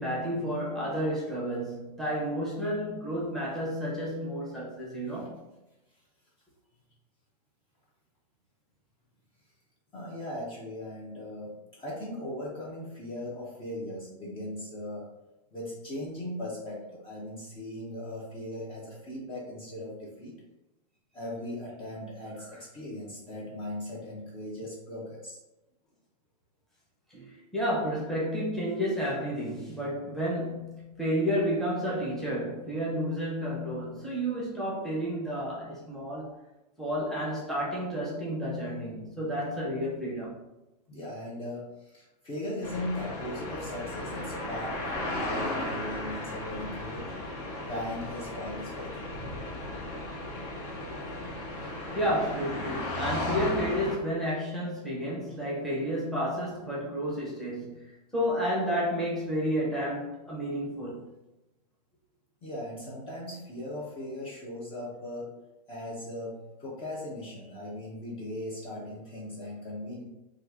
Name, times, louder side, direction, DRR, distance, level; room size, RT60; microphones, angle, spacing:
voice 1, 0.0-5.4 27.1-36.3 36.8-40.4 51.9-57.8 58.1-61.0, equal, ahead, 0.9 m, -31 dB
voice 2, 9.9-15.1 15.5-20.4 21.1-25.4 40.9-47.1 47.6-49.1 62.4-65.3 65.7-70.0, left 1 dB, 25° left, 0.8 m, -38 dB
sound 1, 42.6-54.0, left 1 dB, 50° left, 1.3 m, -35 dB
2.9 x 2.5 x 3.5 m
hypercardioid pair, 135°, 21 cm